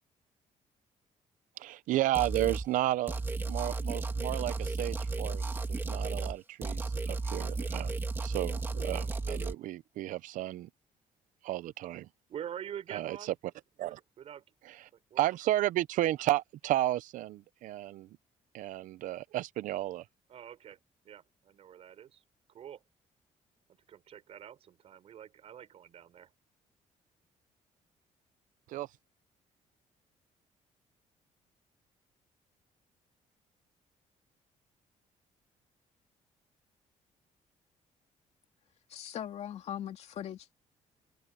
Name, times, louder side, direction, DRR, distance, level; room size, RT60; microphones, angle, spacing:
voice 1, 1.6-7.9 8.2-10.7 11.4-12.1 12.9-13.3 13.8-14.0 14.7-14.8 15.2-18.1 18.5-20.0 28.7-28.9, right 14 dB, 85° right, 0.7 m, -33 dB
sound 1, 2.1-2.7 3.1-6.4 6.6-9.5, right 3 dB, 15° right, 1.5 m, -34 dB
voice 2, 12.3-13.3 13.8-14.4 15.1-15.2 20.3-20.8 21.0-22.2 22.5-22.8 23.9-26.3, right 9 dB, 50° right, 5.1 m, -46 dB
voice 3, 38.9-40.5, left 10 dB, 55° left, 2.4 m, -40 dB
cardioid pair, 175°, 13 cm